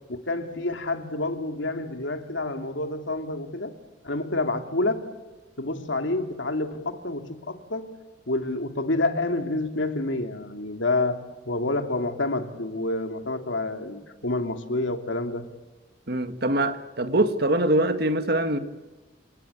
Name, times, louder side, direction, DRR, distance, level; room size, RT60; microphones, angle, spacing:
voice 1, 0.1-3.7 4.0-5.1 5.6-7.9 8.3-15.4, left 2 dB, 90° left, 6 dB, 2.7 m, -28 dB
voice 2, 16.1-18.6, right 1 dB, 55° right, 9 dB, 1.8 m, -23 dB
29.0 x 18.5 x 8.4 m, 1.2 s
head